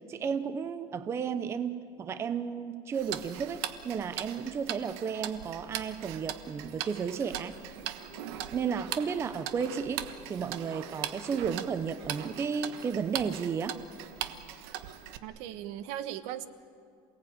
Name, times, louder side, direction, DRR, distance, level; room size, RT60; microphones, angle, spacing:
voice 1, 0.0-7.6 8.5-13.8, right 6 dB, 20° right, 11 dB, 0.7 m, -33 dB
Tick-tock, 2.9-15.2, right 11 dB, 80° right, 1.3 m, -40 dB
sound 1, 8.1-13.7, left 5 dB, 35° left, 1.6 m, -54 dB
voice 2, 15.2-16.5, right 11 dB, 65° right, 12 dB, 1.1 m, -38 dB
28.0 x 18.5 x 8.9 m, 2.4 s
cardioid pair, 165°, 13 cm